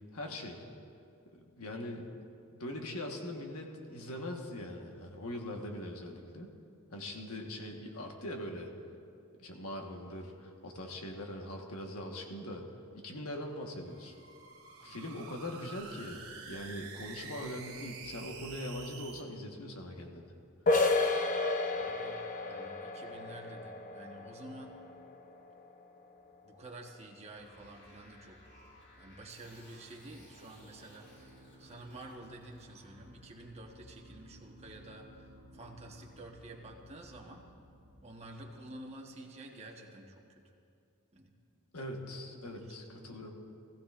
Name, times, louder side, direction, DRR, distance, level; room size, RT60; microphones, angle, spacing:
voice 1, 0.1-0.6 1.3-2.1 2.5-6.5 6.9-8.7 9.4-12.6 12.9-14.1 14.8-16.2 16.5-20.3 41.7-43.3, left 1 dB, 80° left, 2 dB, 1.4 m, -41 dB
sound 1, 13.8-19.2, right 5 dB, 70° right, 1.5 m, -48 dB
voice 2, 14.8-15.2 21.8-24.8 26.4-28.4 29.0-35.3 35.5-37.5 38.0-40.4 41.1-41.3 42.3-43.1, right 1 dB, 30° right, 0 dB, 1.1 m, -50 dB
sound 2, 20.7-26.1, left 3 dB, 35° left, 0.7 m, -32 dB
sound 3, 27.3-39.7, equal, 50° left, 3.5 m, -58 dB
19.0 x 14.5 x 2.5 m, 2.5 s
head